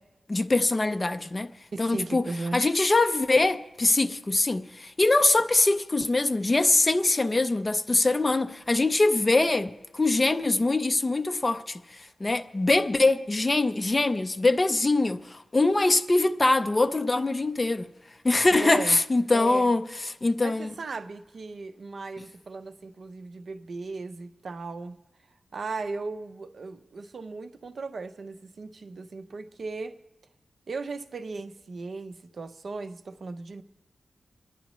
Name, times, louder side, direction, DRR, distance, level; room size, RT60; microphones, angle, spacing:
voice 1, 0.3-1.5 1.8-2.3 2.5-17.9 18.2-20.7, left 2 dB, 25° left, 0.5 m, -23 dB
voice 2, 1.7-2.6 18.5-19.0 19.3-19.7 20.4-25.0 25.5-30.0 30.7-33.6, right 3 dB, 55° right, 0.5 m, -37 dB
27.5 x 10.5 x 3.0 m
wide cardioid pair, 170°, 0 cm